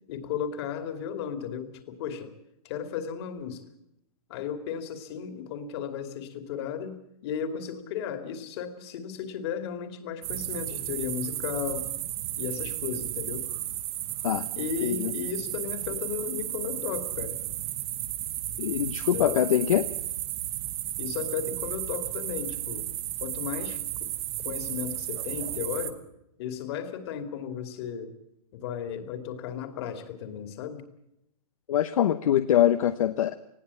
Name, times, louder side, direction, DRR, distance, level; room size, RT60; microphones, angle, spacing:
voice 1, 0.1-2.3 2.6-3.6 4.3-11.9 12.4-13.5 14.6-17.4 19.1-19.4 21.0-22.8 23.2-24.1 24.4-26.0 26.4-28.2 28.5-30.8, left 8 dB, 45° left, 8 dB, 2.7 m, -35 dB
sound 1, 10.2-25.9, right 13 dB, 45° right, 1.7 m, -34 dB
voice 2, 14.8-15.1 18.6-19.9 31.7-33.4, left 11 dB, 60° left, 10 dB, 0.9 m, -24 dB
20.0 x 15.5 x 8.5 m, 0.82 s
hypercardioid pair, 140°, 19 cm